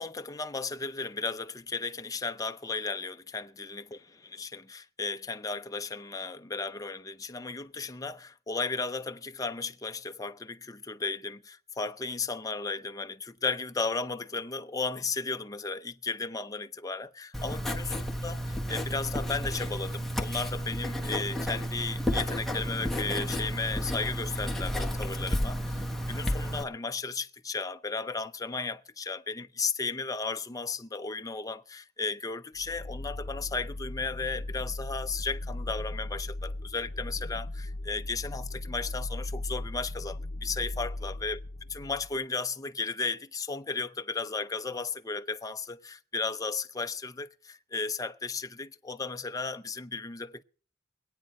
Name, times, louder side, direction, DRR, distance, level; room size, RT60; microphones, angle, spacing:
voice 1, 0.0-17.9 18.2-41.4 41.7-50.4, left 4 dB, 20° left, 0.6 m, -35 dB
Writing, 17.3-26.6, equal, ahead, 1.1 m, -32 dB
sound 1, 32.5-42.2, left 1 dB, 85° left, 0.8 m, -37 dB
23.5 x 9.0 x 4.3 m
head